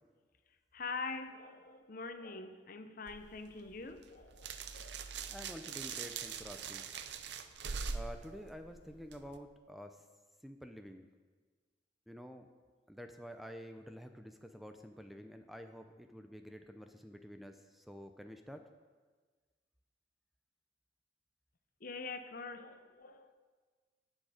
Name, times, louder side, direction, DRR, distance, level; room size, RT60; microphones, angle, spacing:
voice 1, 0.7-5.0 21.8-23.3, left 4 dB, 50° left, 0.8 m, -44 dB
sound 1, 3.1-9.4, right 5 dB, 70° right, 0.7 m, -43 dB
voice 2, 5.3-6.9 7.9-10.1 10.4-11.1 12.1-12.5 12.9-18.6, equal, ahead, 0.5 m, -49 dB
18.0 x 6.4 x 5.0 m
head